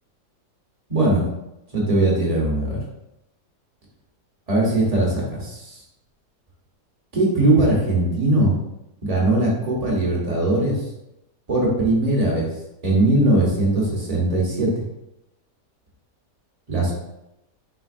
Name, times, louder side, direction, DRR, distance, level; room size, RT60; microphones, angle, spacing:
voice 1, 0.9-1.2 1.7-2.8 4.5-5.8 7.1-8.5 9.0-10.8 11.5-12.5 12.8-14.7 16.7-16.9, right 2 dB, 25° right, -4 dB, 1.1 m, -20 dB
5.0 x 3.8 x 2.5 m, 0.88 s
omnidirectional pair, 1.8 m